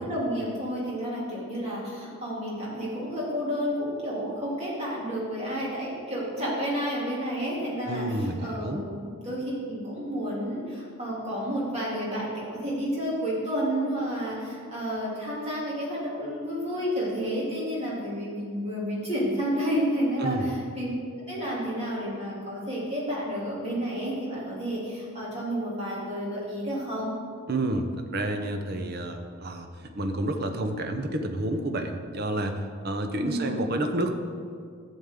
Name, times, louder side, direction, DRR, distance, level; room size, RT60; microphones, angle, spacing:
voice 1, 0.0-20.9 21.3-27.1 33.2-33.6, equal, 30° right, -6 dB, 2.7 m, -30 dB
voice 2, 7.9-8.8 20.2-20.5 27.5-29.7 29.9-34.1, right 1 dB, 45° right, 6 dB, 0.7 m, -29 dB
12.0 x 7.3 x 3.7 m, 2.1 s
head